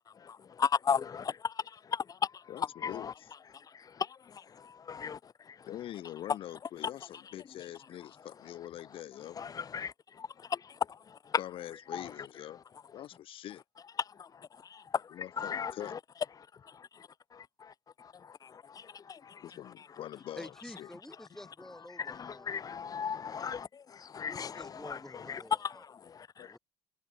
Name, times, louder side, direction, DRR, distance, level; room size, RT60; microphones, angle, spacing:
voice 1, 0.1-3.1 3.5-5.7 6.8-6.9 9.3-11.4 11.9-12.1 14.0-16.0 16.5-16.9 17.3-19.5 21.9-26.6, left 7 dB, 35° left, 1.3 m, -37 dB
voice 2, 2.5-3.3 5.7-9.4 11.4-12.6 12.9-13.6 15.1-15.9 19.4-20.9 26.4-26.5, left 12 dB, 55° left, 1.7 m, -44 dB
voice 3, 20.4-22.6 24.2-25.8 26.4-26.6, left 1 dB, 5° left, 4.2 m, -49 dB
supercardioid pair, 80°, 11 cm